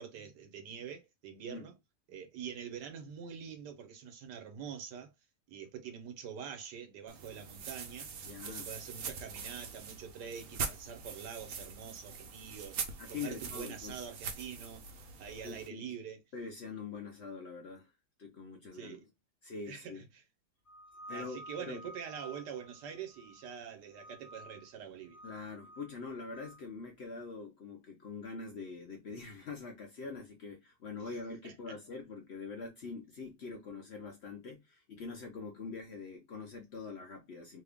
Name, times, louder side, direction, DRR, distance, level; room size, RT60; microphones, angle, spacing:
voice 1, 0.0-1.7 2.1-5.1 5.5-8.1 8.4-14.9 15.2-16.2 18.6-19.1 19.6-20.2 21.1-25.2 31.1-31.2 31.4-31.7, right 7 dB, 80° right, 1.5 m, -45 dB
sound 1, 7.1-15.7, right 5 dB, 65° right, 1.1 m, -43 dB
voice 2, 8.2-8.7 13.0-13.9 15.4-15.9 16.3-17.9 18.2-19.0 19.4-20.0 21.1-21.9 25.2-37.6, left 4 dB, 60° left, 0.7 m, -44 dB
sound 2, 20.7-23.6 23.9-24.7 25.1-26.6, equal, 15° left, 0.7 m, -52 dB
3.3 x 2.3 x 3.5 m
omnidirectional pair, 1.8 m